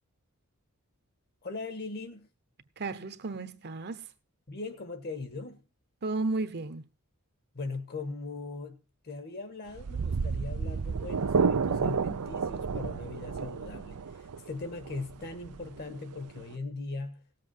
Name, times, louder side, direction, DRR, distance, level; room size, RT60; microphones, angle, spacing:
voice 1, 1.4-2.3 4.5-5.7 7.5-17.3, left 3 dB, 45° left, 1.6 m, -40 dB
voice 2, 2.8-4.1 6.0-6.9, right 3 dB, 50° right, 0.9 m, -33 dB
sound 1, 9.7-16.5, right 5 dB, 85° right, 0.6 m, -31 dB
18.0 x 7.8 x 4.5 m
head